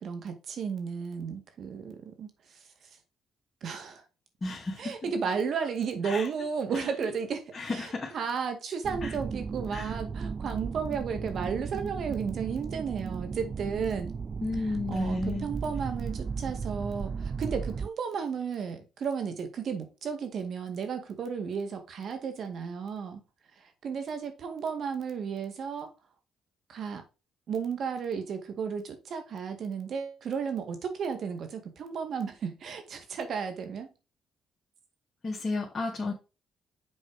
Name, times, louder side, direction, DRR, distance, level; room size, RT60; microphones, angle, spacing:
voice 1, 0.0-2.9 3.6-4.0 4.8-14.1 14.6-23.2 23.6-25.9 26.7-27.0 27.5-33.9, right 6 dB, 60° right, 2.0 m, -34 dB
voice 2, 4.4-5.0 6.0-6.3 7.5-8.1 9.0-9.1 9.7-9.9 14.4-15.5 35.2-36.1, left 2 dB, 30° left, 2.0 m, -32 dB
sound 1, 8.8-17.9, right 5 dB, 40° right, 0.3 m, -35 dB
7.4 x 4.3 x 4.8 m
cardioid pair, 90°, 0 cm